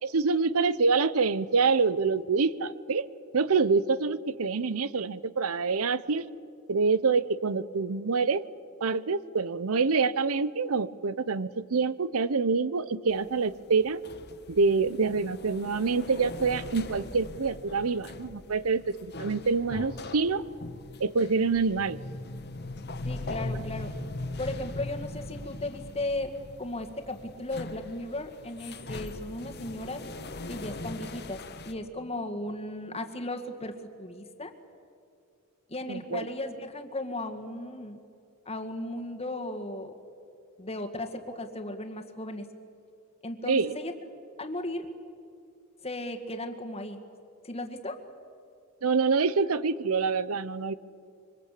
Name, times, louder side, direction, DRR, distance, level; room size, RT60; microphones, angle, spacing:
voice 1, 0.0-3.1 3.3-6.2 6.7-8.4 8.8-14.0 14.5-20.4 21.0-22.0 35.9-36.3 43.5-43.8 48.8-50.7, right 4 dB, 80° right, 17 dB, 0.8 m, -26 dB
sound 1, 13.1-31.7, left 2 dB, 50° left, 1.5 m, -40 dB
voice 2, 23.0-23.9 24.4-26.3 26.6-30.0 30.5-34.5 35.7-38.0 38.5-39.9 40.6-42.5 43.2-43.9 44.4-44.9 45.8-47.0 47.4-48.0, left 1 dB, 30° left, 6 dB, 2.0 m, -36 dB
26.0 x 24.0 x 8.4 m, 2.4 s
head